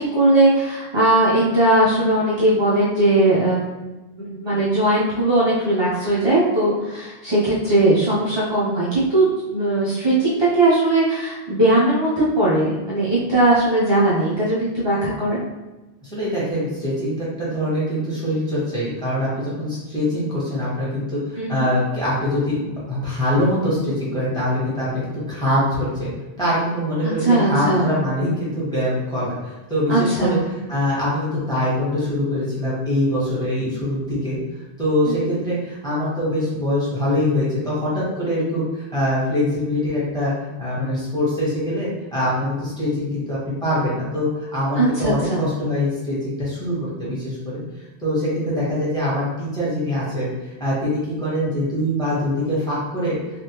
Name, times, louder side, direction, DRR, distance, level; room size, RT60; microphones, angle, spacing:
voice 1, 0.0-3.6 4.2-15.4 21.4-21.7 27.0-27.9 29.9-30.4 35.0-35.1 44.8-45.4, right 1 dB, 30° right, -8 dB, 0.5 m, -19 dB
voice 2, 16.0-26.1 26.4-30.4 30.7-34.4 34.8-40.3 40.6-47.6 48.0-53.2, left 1 dB, 5° left, -8 dB, 1.2 m, -23 dB
3.3 x 2.4 x 2.9 m, 1.1 s
omnidirectional pair, 1.1 m